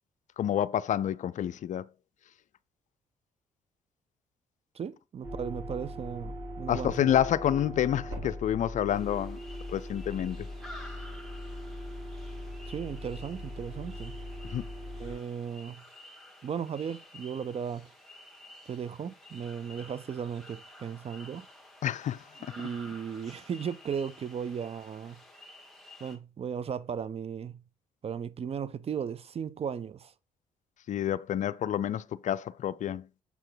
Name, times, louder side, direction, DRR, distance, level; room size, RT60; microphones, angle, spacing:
voice 1, 0.4-1.8 6.7-9.4 9.7-10.5 14.5-14.6 21.8-22.2 30.9-33.0, left 10 dB, 50° left, 0.4 m, -28 dB
voice 2, 4.7-7.1 12.7-14.2 15.0-15.8 16.4-17.9 18.7-21.5 22.4-25.2 26.0-27.6 28.0-30.1, right 7 dB, 40° right, 0.5 m, -36 dB
sound 1, 5.2-15.2, equal, 90° right, 4.4 m, -40 dB
sound 2, 8.9-26.2, left 1 dB, ahead, 1.5 m, -52 dB
6.9 x 4.5 x 3.8 m
hypercardioid pair, 55°, 16 cm